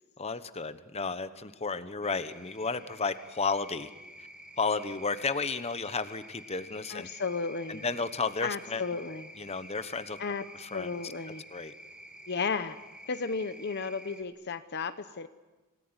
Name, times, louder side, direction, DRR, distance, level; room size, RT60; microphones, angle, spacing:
voice 1, 0.2-3.9 4.6-7.1 7.7-8.8 9.4-10.2 10.5-11.1 11.5-11.7, left 4 dB, 30° left, 12 dB, 1.1 m, -33 dB
sound 1, 2.0-14.2, equal, 5° right, 2.1 m, -50 dB
voice 2, 6.9-7.8 8.4-9.3 10.2-10.4 10.7-11.4 12.3-12.8 13.1-15.3, left 4 dB, 50° left, 11 dB, 0.8 m, -34 dB
27.5 x 18.5 x 9.7 m, 1.2 s
head